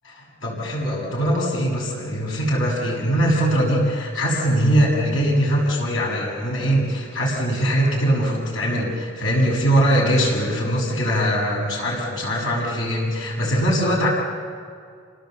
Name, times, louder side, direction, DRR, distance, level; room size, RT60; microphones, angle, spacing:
voice 1, 0.0-14.1, equal, 60° left, -3 dB, 7.2 m, -21 dB
29.0 x 19.0 x 7.9 m, 2.2 s
head